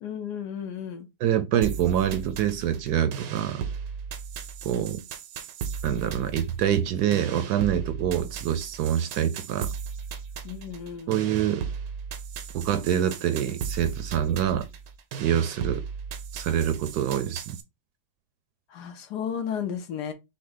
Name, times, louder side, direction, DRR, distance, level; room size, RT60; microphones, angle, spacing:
voice 1, 0.0-1.1 10.4-11.1 18.7-20.1, left 8 dB, 75° left, 1.2 m, -33 dB
voice 2, 1.2-3.6 4.6-5.0 5.8-9.7 11.1-11.7 12.5-14.7 15.2-15.8 16.3-17.6, right 10 dB, 75° right, 1.0 m, -25 dB
sound 1, 1.6-17.6, right 6 dB, 90° right, 1.3 m, -36 dB
6.0 x 2.2 x 3.7 m
omnidirectional pair, 1.8 m